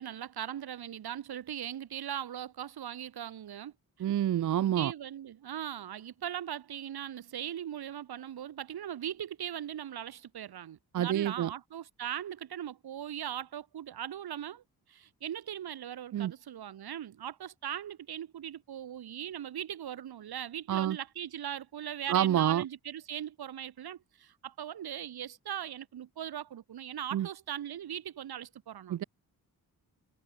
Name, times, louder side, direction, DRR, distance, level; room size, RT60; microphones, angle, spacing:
voice 1, 0.0-3.7 4.7-14.6 14.9-29.0, right 10 dB, 80° right, 1.3 m, -39 dB
voice 2, 4.0-4.9 10.9-11.5 16.1-16.3 20.7-21.0 22.1-22.6 27.1-27.3 28.9-29.0, right 11 dB, 55° right, 0.5 m, -28 dB
wide cardioid pair, 135°, 37 cm